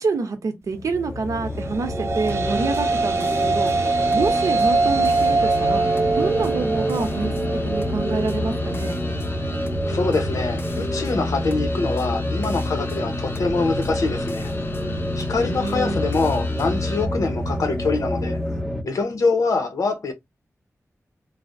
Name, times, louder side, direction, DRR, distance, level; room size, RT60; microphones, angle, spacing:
voice 1, 0.0-3.7 4.1-5.8 6.2-7.4 7.7-9.0 15.4-16.0, right 4 dB, 85° right, 0.7 m, -27 dB
sound 1, 0.7-18.8, left 1 dB, ahead, 0.5 m, -28 dB
sound 2, 1.7-10.2, right 3 dB, 55° right, 0.4 m, -24 dB
sound 3, 2.3-17.0, left 3 dB, 45° left, 0.5 m, -35 dB
voice 2, 9.8-14.5 15.2-18.4 18.8-20.1, left 3 dB, 85° left, 0.7 m, -24 dB
3.2 x 2.1 x 2.5 m
wide cardioid pair, 135°, 6 cm